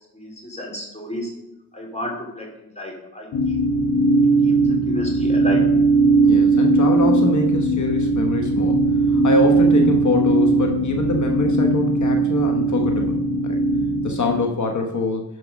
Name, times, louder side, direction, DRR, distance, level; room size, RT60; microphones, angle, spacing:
voice 1, 0.1-1.4 1.7-3.6 4.4-5.7, left 1 dB, 20° left, -1 dB, 3.3 m, -32 dB
sound 1, 3.3-14.4, right 2 dB, 85° left, 0.8 m, -18 dB
voice 2, 6.2-13.6 14.0-15.2, left 2 dB, 50° left, 3 dB, 1.1 m, -24 dB
12.0 x 4.8 x 5.1 m, 0.90 s
cardioid pair, 80°, 36 cm